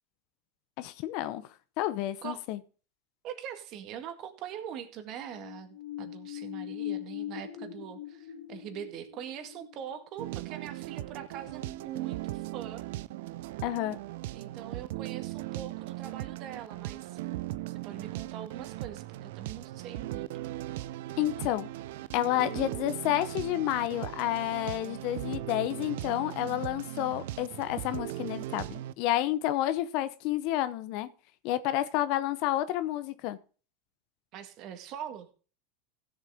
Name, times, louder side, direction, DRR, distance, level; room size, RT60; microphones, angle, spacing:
voice 1, 0.8-1.4 1.8-2.6 13.6-14.0 21.2-21.7 22.1-31.1 31.4-33.4, left 14 dB, 60° left, 0.8 m, -30 dB
voice 2, 3.2-12.8 14.3-17.2 17.7-20.4 34.3-35.3, right 9 dB, 50° right, 1.9 m, -42 dB
sound 1, 5.1-11.5 11.8-11.9, left 13 dB, 80° left, 2.3 m, -42 dB
sound 2, 10.2-28.9, right 16 dB, 70° right, 0.4 m, -38 dB
16.0 x 7.3 x 3.6 m
hypercardioid pair, 95°, 0 cm